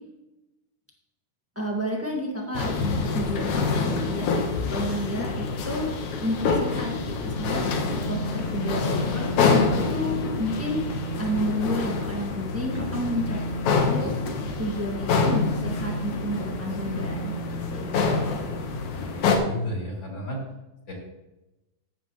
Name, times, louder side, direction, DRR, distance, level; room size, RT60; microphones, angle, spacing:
voice 1, 1.5-4.3 4.7-5.9 6.2-7.6 8.1-9.6 9.9-10.8 11.2-13.4 13.7-14.1 14.6-17.3 17.7-18.4, equal, 10° right, -1 dB, 0.7 m, -31 dB
sound 1, 2.5-19.4, left 4 dB, 75° left, 2.6 m, -26 dB
voice 2, 18.9-20.4 20.9-21.0, left 1 dB, 35° left, -3 dB, 3.6 m, -33 dB
14.5 x 9.1 x 3.1 m, 0.98 s
omnidirectional pair, 3.6 m